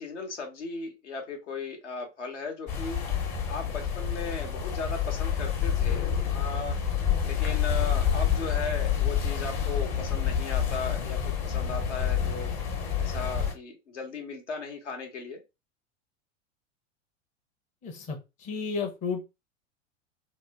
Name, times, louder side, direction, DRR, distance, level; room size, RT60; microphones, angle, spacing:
voice 1, 0.0-3.0 3.5-6.8 7.2-12.5 13.0-15.4, left 4 dB, 70° left, 2 dB, 1.1 m, -37 dB
sound 1, 2.7-13.5, left 8 dB, 40° left, 1.1 m, -28 dB
voice 2, 17.8-19.3, left 5 dB, 20° left, 2 dB, 0.7 m, -33 dB
2.9 x 2.1 x 3.5 m, 0.25 s
figure-of-eight pair, 90°, 37 cm